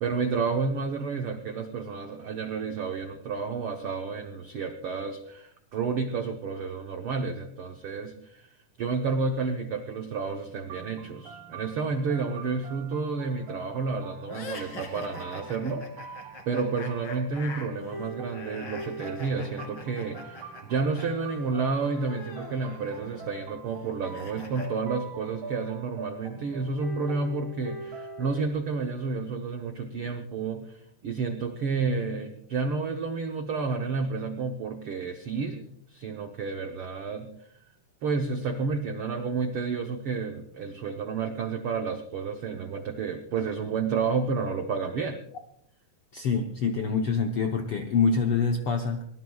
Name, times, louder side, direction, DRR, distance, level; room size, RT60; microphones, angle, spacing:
voice 1, 0.0-8.5 8.8-15.9 16.5-30.7 31.0-37.3 38.0-45.2, right 4 dB, 85° right, 5 dB, 1.2 m, -30 dB
sound 1, 10.7-28.5, right 3 dB, 60° right, 4.0 m, -43 dB
sound 2, 14.3-21.1 21.3-24.7, left 3 dB, 40° left, 2.7 m, -44 dB
voice 2, 46.1-49.1, left 5 dB, 75° left, 3 dB, 1.3 m, -26 dB
23.5 x 18.5 x 2.3 m, 0.70 s
omnidirectional pair, 3.8 m